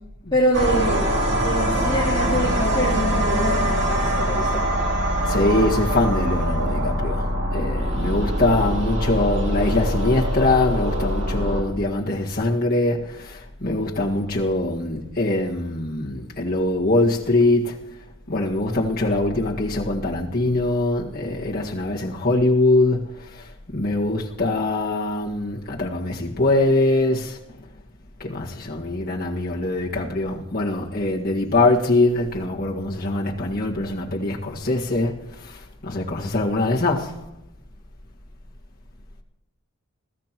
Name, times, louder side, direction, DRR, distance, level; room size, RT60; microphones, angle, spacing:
voice 1, 0.3-4.5, equal, 20° left, 3.2 m, -25 dB
sound 1, 0.5-11.6, equal, 55° right, 3.0 m, -23 dB
voice 2, 5.3-7.3 7.5-13.0 13.6-17.7 18.3-23.1 23.7-27.3 28.2-35.1 35.8-37.1, left 2 dB, 45° left, 1.8 m, -22 dB
21.5 x 15.5 x 3.0 m
head